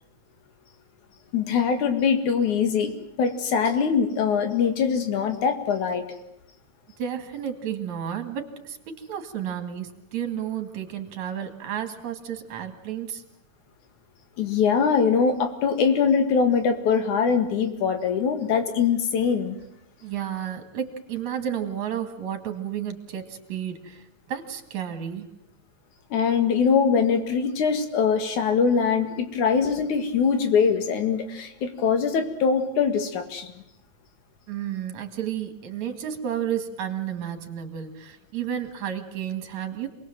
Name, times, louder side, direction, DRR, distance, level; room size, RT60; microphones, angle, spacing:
voice 1, 1.3-2.9 3.2-6.0 14.4-19.6 26.1-33.5, left 6 dB, 85° left, 7 dB, 3.3 m, -22 dB
voice 2, 7.0-13.2 20.0-25.3 34.5-39.9, right 9 dB, 70° right, 8 dB, 3.5 m, -32 dB
27.5 x 20.5 x 7.5 m, 0.83 s
omnidirectional pair, 3.4 m